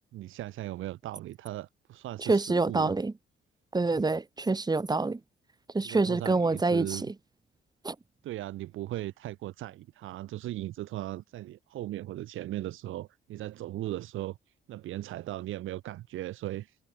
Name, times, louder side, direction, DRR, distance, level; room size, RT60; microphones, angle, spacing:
voice 1, 0.1-2.9 3.9-4.1 5.8-7.1 8.2-14.4 14.7-16.8, right 14 dB, 85° right, 6.0 m, -38 dB
voice 2, 2.3-3.1 3.7-5.2 5.7-7.0 7.8-7.9, right 3 dB, 20° right, 2.8 m, -26 dB
cardioid pair, 90°, 20 cm